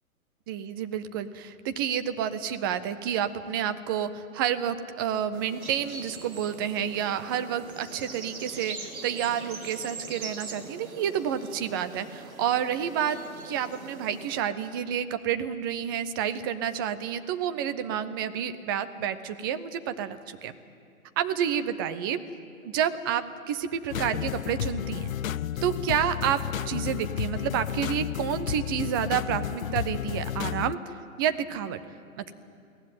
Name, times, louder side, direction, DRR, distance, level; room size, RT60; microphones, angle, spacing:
voice 1, 0.5-13.2 13.4-20.5 21.2-22.2 22.6-25.1 25.6-31.8 32.2-32.3, right 9 dB, 15° right, 10 dB, 0.5 m, -29 dB
sound 1, 5.3-14.4, right 3 dB, 75° right, 3.3 m, -42 dB
sound 2, 23.9-30.8, left 10 dB, 65° left, 0.6 m, -32 dB
22.5 x 16.5 x 9.5 m, 2.4 s
figure-of-eight pair, 125°, 43 cm